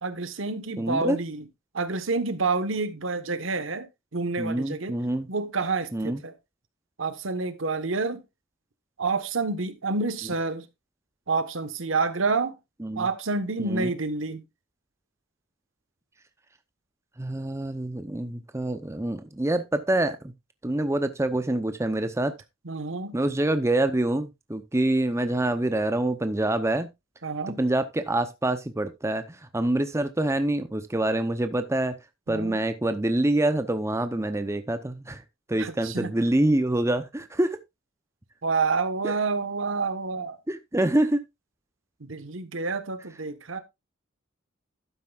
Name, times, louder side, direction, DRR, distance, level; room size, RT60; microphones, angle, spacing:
voice 1, 0.0-1.5 1.7-3.9 4.1-5.0 5.3-6.3 7.0-8.2 9.0-10.7 11.3-12.6 13.0-14.4 22.6-23.2 27.2-27.6 32.3-32.6 35.6-36.1 38.4-40.4 42.0-43.6, right 4 dB, 70° right, 1.2 m, -28 dB
voice 2, 0.8-1.2 4.4-5.3 5.9-6.2 12.8-13.1 13.6-13.9 17.2-20.3 20.6-22.3 23.1-26.9 27.6-31.9 32.3-35.2 35.5-37.6 39.0-39.1 40.5-41.2, right 1 dB, 15° right, 0.7 m, -26 dB
12.0 x 9.2 x 2.4 m
head